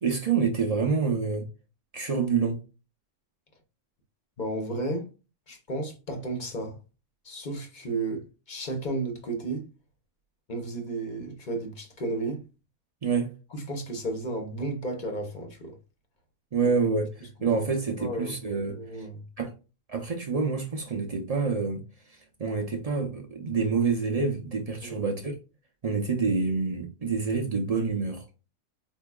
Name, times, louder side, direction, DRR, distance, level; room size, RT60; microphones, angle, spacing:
voice 1, 0.0-1.5 1.9-2.6 13.0-13.3 16.5-19.1 19.4-19.5 19.9-21.8 22.1-25.3 25.8-28.2, right 5 dB, 60° right, 0.4 m, -27 dB
voice 2, 4.4-5.1 5.5-6.8 7.2-9.7 10.5-12.4 13.5-15.8 17.4-17.6 18.0-18.4 18.7-19.2 24.8-25.0, right 2 dB, 40° left, 0.8 m, -33 dB
4.6 x 2.6 x 2.2 m
omnidirectional pair, 1.6 m